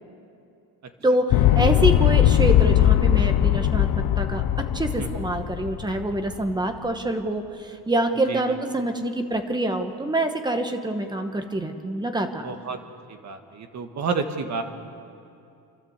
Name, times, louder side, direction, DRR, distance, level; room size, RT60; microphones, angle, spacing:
voice 1, 1.0-3.9 4.2-12.5, right 1 dB, 10° right, 6 dB, 1.1 m, -26 dB
sound 1, 1.3-6.5, left 12 dB, 70° left, 0.7 m, -20 dB
voice 2, 12.4-12.8 13.1-14.6, right 5 dB, 45° right, 6 dB, 1.5 m, -30 dB
28.5 x 12.5 x 8.0 m, 2.6 s
cardioid pair, 175°, 38 cm